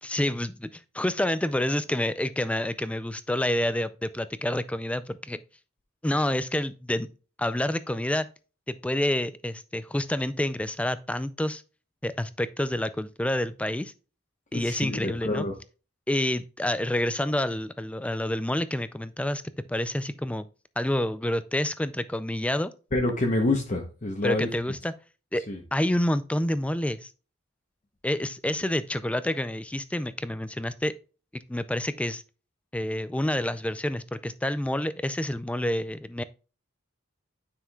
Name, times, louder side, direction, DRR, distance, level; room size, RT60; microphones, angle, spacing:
voice 1, 0.0-5.4 6.0-7.1 7.4-8.3 8.7-11.6 12.0-13.9 14.5-15.5 16.1-19.4 19.7-20.5 20.8-22.7 24.2-24.9 25.3-25.4 25.7-27.1 28.0-30.9 31.3-32.2 32.7-36.2, left 1 dB, 5° left, 0.3 m, -28 dB
voice 2, 14.5-15.5 22.9-24.5 25.5-25.6, left 2 dB, 35° left, 0.8 m, -27 dB
9.8 x 5.6 x 2.3 m
head